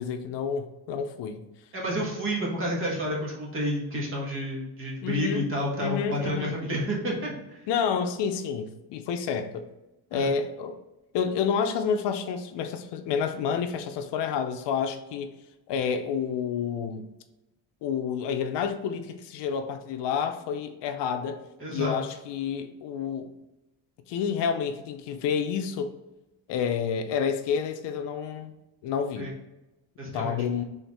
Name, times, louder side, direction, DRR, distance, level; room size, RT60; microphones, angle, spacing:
voice 1, 0.0-1.4 5.0-5.5 5.8-6.5 7.7-9.7 10.1-10.8 11.1-15.3 15.7-17.1 17.8-21.4 21.7-23.3 24.1-25.9 26.5-28.5 28.8-29.3 30.1-30.6, left 7 dB, 70° left, 7 dB, 0.6 m, -29 dB
voice 2, 1.7-7.6 10.1-10.3 21.6-22.0 29.2-29.3 30.0-30.4, equal, 30° right, -3 dB, 1.3 m, -30 dB
4.5 x 3.4 x 3.4 m, 0.98 s
cardioid pair, 170°, 44 cm